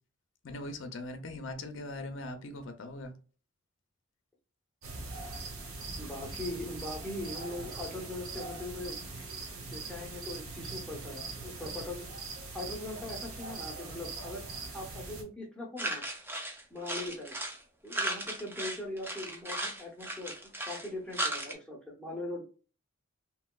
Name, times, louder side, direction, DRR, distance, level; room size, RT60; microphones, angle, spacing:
voice 1, 0.4-3.1, left 2 dB, 60° left, 7 dB, 0.5 m, -40 dB
sound 1, 4.8-15.2, right 3 dB, 90° right, 0.9 m, -41 dB
voice 2, 6.0-9.0 9.7-12.1 12.5-14.4 14.7-16.0 16.7-17.3 17.8-20.3 20.6-22.5, left 2 dB, 5° left, -2 dB, 0.7 m, -40 dB
sound 2, 15.8-17.6 17.9-21.5, right 1 dB, 10° right, 0.4 m, -36 dB
3.0 x 2.9 x 2.3 m, 0.38 s
head